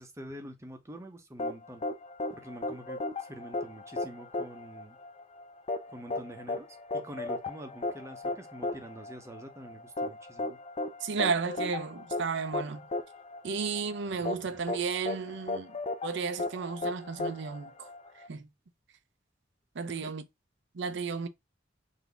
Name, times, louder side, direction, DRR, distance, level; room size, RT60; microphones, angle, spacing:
voice 1, 0.0-1.8 2.3-5.0 5.9-6.7 6.9-10.6 14.1-14.2 19.9-20.1, right 1 dB, 15° right, 0.8 m, -46 dB
sound 1, 1.4-18.3, left 2 dB, 35° left, 0.5 m, -36 dB
voice 2, 11.0-12.8 13.4-15.8 16.0-17.9 18.3-18.5 19.8-20.2 20.7-21.3, right 5 dB, 65° right, 0.5 m, -33 dB
4.0 x 2.7 x 3.4 m
head